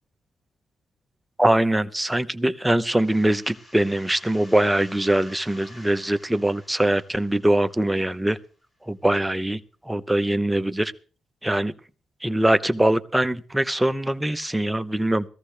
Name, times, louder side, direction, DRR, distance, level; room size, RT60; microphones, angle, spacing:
voice 1, 1.4-8.4 8.9-9.6 9.9-10.9 11.4-11.7 12.2-15.3, right 1 dB, 10° right, 10 dB, 0.9 m, -22 dB
sound 1, 3.0-8.5, left 1 dB, 30° left, 5.1 m, -50 dB
18.5 x 14.5 x 3.4 m, 0.37 s
cardioid pair, 75°, 0 cm